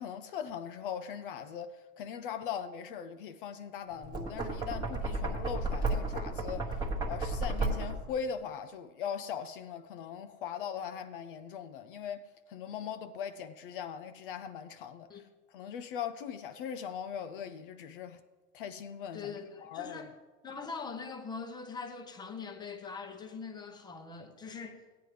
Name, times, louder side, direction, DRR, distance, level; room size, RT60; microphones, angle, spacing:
voice 1, 0.0-12.2 12.5-18.2 18.5-20.1, left 8 dB, 40° left, 0.4 m, -40 dB
Knock, 4.0-8.1, right 2 dB, 10° right, 1.1 m, -33 dB
voice 2, 19.1-20.1 20.4-24.8, left 5 dB, 10° left, 0.7 m, -42 dB
15.0 x 9.4 x 3.2 m
supercardioid pair, 145°, 46 cm